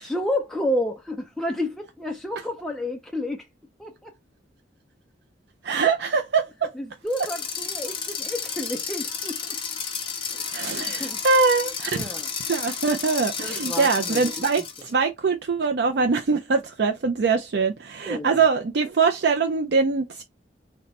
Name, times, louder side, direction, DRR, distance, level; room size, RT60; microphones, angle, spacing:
voice 1, 0.0-3.5 3.8-4.1 5.7-5.9 6.7-9.6 10.3-11.2 11.9-12.3 13.4-14.4 18.1-18.4, left 1 dB, ahead, 0.4 m, -31 dB
voice 2, 5.6-6.7 10.5-11.9 12.5-20.2, right 4 dB, 60° right, 0.4 m, -23 dB
sound 1, 7.1-14.9, left 6 dB, 25° left, 1.0 m, -32 dB
4.1 x 2.1 x 4.2 m
head